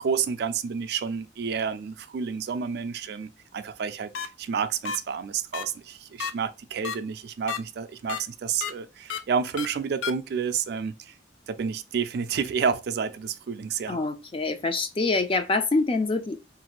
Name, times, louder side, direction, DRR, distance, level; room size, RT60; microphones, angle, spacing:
voice 1, 0.0-11.1 11.5-14.0, right 6 dB, 55° right, 0.3 m, -30 dB
sound 1, 4.1-4.3 4.9-5.0 5.5-5.6 6.2-6.3 6.8-7.0 7.5-7.6 8.1-8.2 8.6-8.7 9.1-9.2 9.6-9.7 10.0-10.1, left 7 dB, 85° left, 0.4 m, -30 dB
voice 2, 13.9-16.4, left 3 dB, 30° left, 0.4 m, -25 dB
3.0 x 2.5 x 2.9 m
head